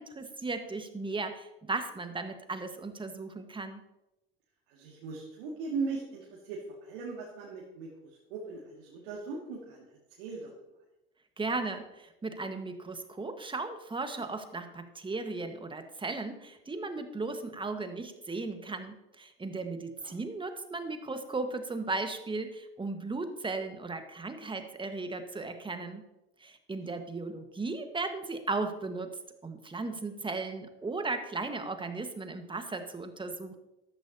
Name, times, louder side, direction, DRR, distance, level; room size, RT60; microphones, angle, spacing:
voice 1, 0.0-3.8 11.4-26.0 26.4-29.1 29.4-33.6, right 3 dB, 15° right, 7 dB, 1.5 m, -36 dB
voice 2, 4.7-7.9 8.3-9.9 10.2-10.5 20.0-20.1 26.9-27.0, right 4 dB, 65° right, -2 dB, 2.2 m, -38 dB
13.5 x 12.5 x 2.9 m, 0.94 s
hypercardioid pair, 65°, 30 cm